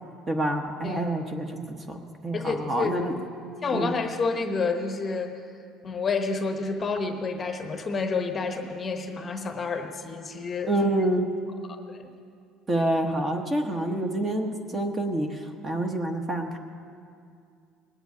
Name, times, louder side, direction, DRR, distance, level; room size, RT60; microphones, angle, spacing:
voice 1, 0.3-3.1 3.7-3.9 10.7-11.2 12.7-16.6, right 1 dB, 20° right, 4 dB, 1.1 m, -27 dB
voice 2, 0.8-1.1 2.3-2.9 3.6-5.4 5.8-10.7 11.7-12.1, left 4 dB, 20° left, 5 dB, 1.0 m, -29 dB
19.5 x 8.1 x 9.1 m, 2.4 s
cardioid pair, 165°, 0 cm